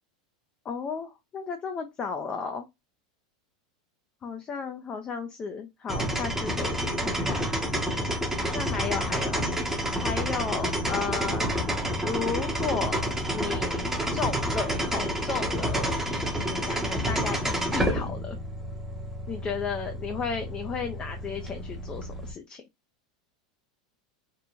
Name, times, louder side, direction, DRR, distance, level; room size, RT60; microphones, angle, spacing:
voice 1, 0.7-2.7 4.2-7.5 8.5-9.4 10.0-11.5 12.0-18.4 19.3-22.6, left 5 dB, 30° left, 0.4 m, -34 dB
sound 1, 5.9-22.3, equal, 10° right, 0.8 m, -29 dB
3.0 x 2.1 x 2.4 m
hypercardioid pair, 105°, 4 cm